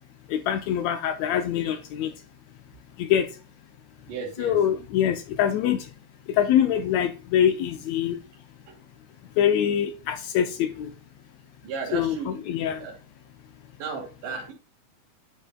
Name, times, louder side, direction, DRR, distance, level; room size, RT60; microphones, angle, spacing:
voice 1, 0.3-2.1 3.0-3.3 4.4-5.8 6.3-8.2 9.4-10.9 11.9-12.1 12.5-12.8, left 9 dB, 80° left, 9 dB, 1.6 m, -24 dB
voice 2, 4.1-4.6 8.7-8.8 11.6-12.4 12.7-13.0 13.8-14.5, right 5 dB, 85° right, -4 dB, 3.0 m, -35 dB
9.9 x 5.4 x 2.3 m, 0.35 s
omnidirectional pair, 3.7 m